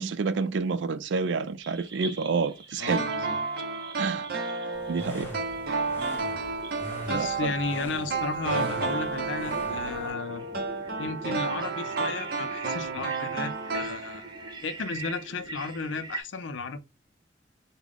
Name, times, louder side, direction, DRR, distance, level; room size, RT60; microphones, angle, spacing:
voice 1, 0.0-3.0 4.0-4.3 4.9-5.3 7.1-7.5, right 4 dB, 75° right, 0.4 m, -28 dB
sound 1, 1.6-16.2, right 3 dB, 25° right, 0.5 m, -44 dB
voice 2, 2.8-3.4 7.1-10.5 11.0-14.3 14.6-16.8, left 4 dB, 85° left, 0.5 m, -34 dB
sound 2, 2.9-14.5 14.8-14.9, right 4 dB, 55° right, 0.8 m, -31 dB
sound 3, 4.7-10.1, equal, 10° left, 1.0 m, -43 dB
3.6 x 2.2 x 3.5 m
head